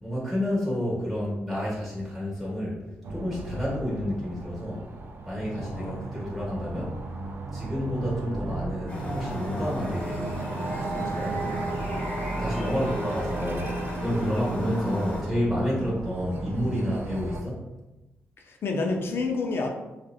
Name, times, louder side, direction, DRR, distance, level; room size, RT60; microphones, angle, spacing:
voice 1, 0.0-2.8 3.1-4.9 5.3-7.0 7.5-10.3 10.8-17.7, equal, ahead, -6 dB, 1.1 m, -30 dB
sound 1, 3.0-17.4, right 2 dB, 50° right, 0.4 m, -35 dB
voice 2, 5.6-6.1 18.4-19.7, left 3 dB, 60° left, 2 dB, 0.5 m, -29 dB
sound 2, 8.9-15.2, left 1 dB, 30° left, 1.0 m, -36 dB
2.8 x 2.4 x 2.3 m, 1.0 s
cardioid pair, 80°, 5 cm